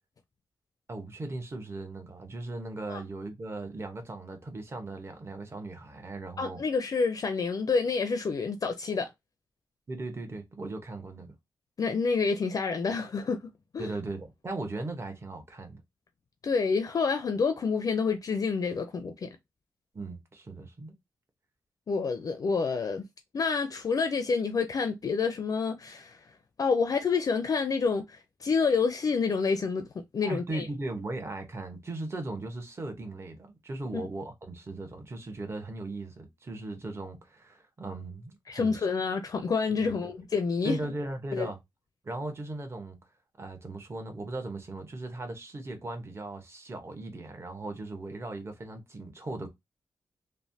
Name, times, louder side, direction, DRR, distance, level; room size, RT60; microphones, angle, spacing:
voice 1, 0.9-6.6 9.9-11.3 13.8-15.8 19.9-20.9 30.2-38.9 39.7-40.1 40.6-41.6 42.0-43.0 43.4-49.5, right 2 dB, 35° right, 0.9 m, -38 dB
voice 2, 6.4-9.1 11.8-13.4 13.7-13.9 16.4-19.3 21.9-23.0 23.3-26.2 26.6-30.6 38.5-40.8 41.3-41.5, left 5 dB, 55° left, 0.4 m, -28 dB
3.1 x 2.1 x 2.7 m
wide cardioid pair, 90°, 8 cm